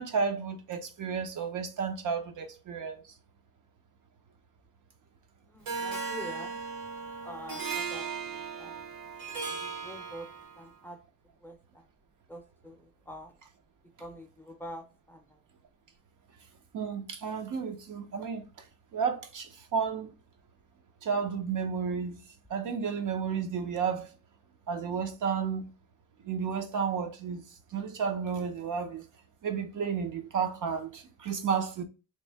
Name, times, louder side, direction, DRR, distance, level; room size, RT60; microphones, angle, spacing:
voice 1, 0.0-3.0 16.7-18.5 18.9-20.1 21.0-22.2 22.5-24.1 24.7-25.7 26.2-27.4 27.7-29.0 29.4-31.8, right 6 dB, 65° right, 0.7 m, -32 dB
voice 2, 5.4-6.6 7.2-8.0 8.3-8.8 9.5-10.3 10.6-11.0 11.4-11.9 12.3-13.4 14.0-15.4, equal, 5° left, 0.5 m, -46 dB
Harp, 5.7-10.7, right 5 dB, 80° right, 1.4 m, -37 dB
3.1 x 2.7 x 3.3 m
wide cardioid pair, 150°, 34 cm